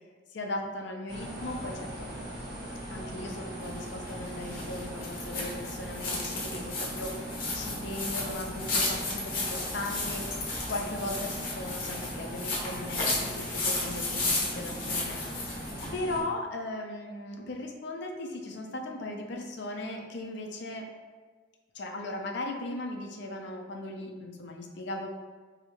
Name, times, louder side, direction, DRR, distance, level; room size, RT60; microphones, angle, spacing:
voice 1, 0.3-2.1 2.9-10.3 10.7-15.2 15.5-20.9 21.7-25.1, left 2 dB, 60° left, 2 dB, 0.5 m, -37 dB
sound 1, 1.1-16.2, equal, 55° right, 1.0 m, -39 dB
sound 2, 3.6-15.9, left 2 dB, 45° left, 0.9 m, -34 dB
2.8 x 2.6 x 4.3 m, 1.4 s
head